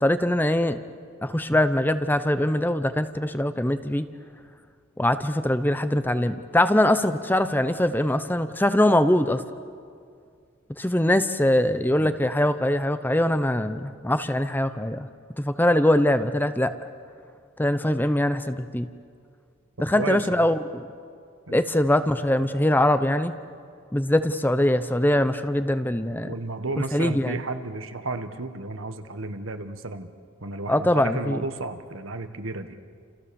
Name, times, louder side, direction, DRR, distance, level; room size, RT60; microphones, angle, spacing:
voice 1, 0.0-0.8 1.2-4.1 5.0-9.4 10.8-15.1 15.4-16.7 17.6-18.8 19.8-20.8 21.5-23.3 23.9-26.3 26.9-27.3 30.7-31.4, left 1 dB, 10° left, 11 dB, 0.8 m, -22 dB
voice 2, 19.9-20.5 21.5-21.6 26.2-30.1 30.4-32.8, right 3 dB, 75° right, 8 dB, 1.5 m, -33 dB
29.5 x 28.5 x 7.1 m, 2.2 s
head